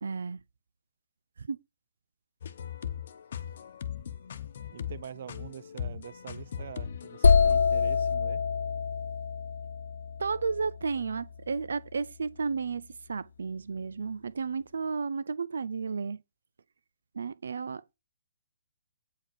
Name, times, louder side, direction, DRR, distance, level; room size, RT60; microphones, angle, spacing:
voice 1, 0.0-0.4 1.4-1.6 10.2-16.2 17.1-17.8, right 5 dB, 85° right, 0.5 m, -33 dB
sound 1, 2.4-7.5, left 8 dB, 40° left, 0.9 m, -39 dB
voice 2, 4.7-8.4, right 8 dB, 40° right, 0.8 m, -45 dB
sound 2, 7.2-11.0, left 5 dB, 85° left, 0.4 m, -26 dB
9.1 x 4.9 x 6.7 m
hypercardioid pair, 180°, 0 cm